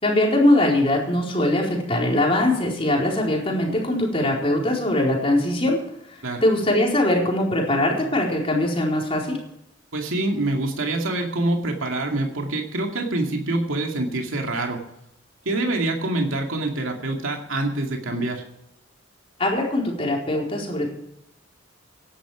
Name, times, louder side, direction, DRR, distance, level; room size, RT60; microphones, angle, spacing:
voice 1, 0.0-5.8 6.1-9.4 19.4-21.0, left 1 dB, 30° left, -1 dB, 4.3 m, -21 dB
voice 2, 9.9-14.8 15.5-18.4, right 2 dB, 90° right, 2 dB, 2.4 m, -25 dB
17.0 x 11.5 x 5.0 m, 0.82 s
head